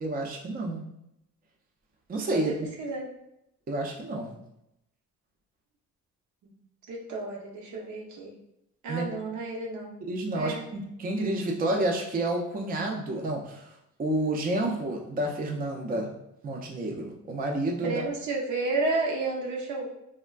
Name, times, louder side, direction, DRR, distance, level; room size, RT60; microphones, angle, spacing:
voice 1, 0.0-0.8 2.1-2.5 3.7-4.4 8.9-9.1 10.1-13.7 14.0-16.1 16.4-18.0, right 1 dB, 30° right, 0 dB, 0.5 m, -30 dB
voice 2, 2.3-3.1 6.4-6.5 6.9-8.3 8.8-10.0 10.3-10.6 17.8-19.9, right 3 dB, 75° right, -1 dB, 0.7 m, -31 dB
3.2 x 2.1 x 2.3 m, 0.82 s
cardioid pair, 90°, 30 cm